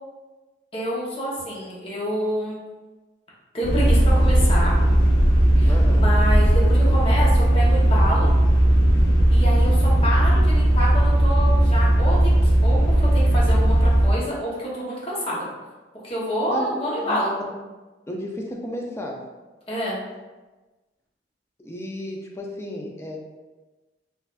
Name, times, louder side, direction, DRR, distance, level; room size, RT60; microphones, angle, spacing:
voice 1, 0.7-2.6 3.5-4.7 5.5-8.3 9.3-15.5 16.0-17.3 19.7-20.0, equal, 30° left, -6 dB, 1.0 m, -27 dB
sound 1, 3.6-14.1, right 1 dB, 90° left, 0.7 m, -17 dB
voice 2, 5.7-6.1 16.5-16.7 17.0-17.2 17.5-17.6 18.1-19.3 21.6-23.2, left 1 dB, 15° left, 0 dB, 0.4 m, -33 dB
4.5 x 2.5 x 2.4 m, 1.2 s
head